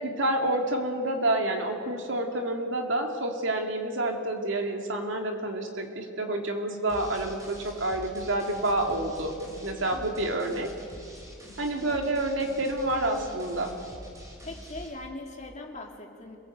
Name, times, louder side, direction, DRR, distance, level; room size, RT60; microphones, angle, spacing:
voice 1, 0.0-9.3 9.6-10.7 11.6-13.7, right 1 dB, 65° right, 3 dB, 2.6 m, -28 dB
sound 1, 6.9-14.9, equal, 15° right, 4.3 m, -46 dB
voice 2, 9.9-10.5 11.7-12.0 14.4-16.4, left 2 dB, 35° left, 2 dB, 2.6 m, -41 dB
26.5 x 17.5 x 8.0 m, 2.4 s
head